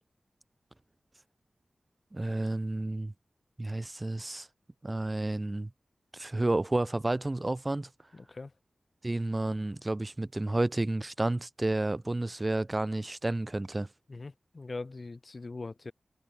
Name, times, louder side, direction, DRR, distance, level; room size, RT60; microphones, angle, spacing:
voice 1, 2.1-3.1 3.6-4.5 4.8-5.7 6.1-7.9 9.0-13.9, right 2 dB, 30° right, 1.4 m, -31 dB
voice 2, 8.1-8.5 14.1-15.9, left 3 dB, 50° left, 4.5 m, -41 dB
cardioid pair, 60°, 0 cm